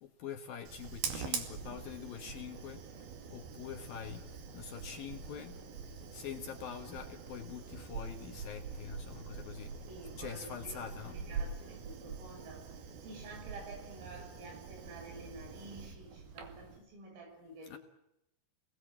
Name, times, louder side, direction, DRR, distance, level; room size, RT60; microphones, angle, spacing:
voice 1, 0.0-2.8 3.3-4.2 4.5-5.6 6.1-9.7 10.2-11.2 17.7-17.8, left 8 dB, 60° left, 5 dB, 2.6 m, -44 dB
Fire, 0.7-16.8, right 6 dB, 55° right, 3.9 m, -44 dB
voice 2, 9.9-17.8, right 2 dB, 85° right, 4 dB, 8.8 m, -50 dB
28.5 x 20.0 x 8.9 m, 0.85 s
omnidirectional pair, 5.7 m